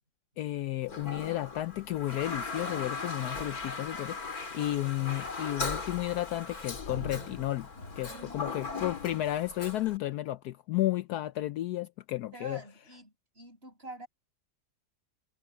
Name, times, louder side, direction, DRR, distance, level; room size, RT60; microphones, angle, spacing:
voice 1, 0.4-7.7 8.0-12.6, left 15 dB, 70° left, 1.0 m, -33 dB
Toilet flush, 0.8-10.0, left 4 dB, 55° left, 3.2 m, -38 dB
voice 2, 8.1-8.9 12.3-14.1, right 2 dB, 35° right, 8.2 m, -48 dB
omnidirectional pair, 1.9 m